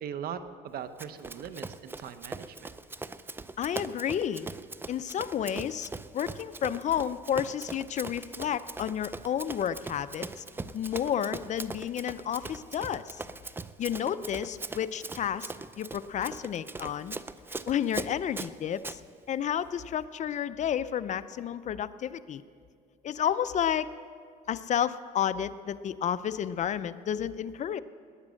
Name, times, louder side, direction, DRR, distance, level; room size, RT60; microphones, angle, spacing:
voice 1, 0.0-2.7, right 8 dB, 65° right, 11 dB, 0.9 m, -40 dB
Run, 1.0-19.0, right 3 dB, 15° right, 0.4 m, -41 dB
voice 2, 3.6-4.5 4.9-10.4 10.7-13.2 13.8-15.5 15.8-17.2 17.7-19.0 19.3-22.4 23.0-23.9 24.5-27.8, left 9 dB, 45° left, 14 dB, 0.5 m, -31 dB
19.5 x 9.7 x 6.3 m, 2.2 s
cardioid pair, 110°, 17 cm